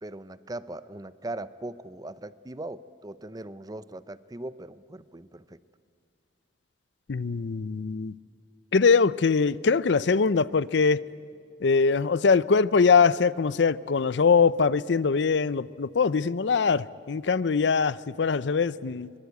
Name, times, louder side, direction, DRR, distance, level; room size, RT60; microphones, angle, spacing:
voice 1, 0.0-5.6, right 2 dB, 20° right, 16 dB, 0.6 m, -39 dB
voice 2, 7.1-8.1 8.7-11.0 11.6-19.1, left 5 dB, 80° left, 19 dB, 0.5 m, -22 dB
24.0 x 22.5 x 8.3 m, 2.3 s
head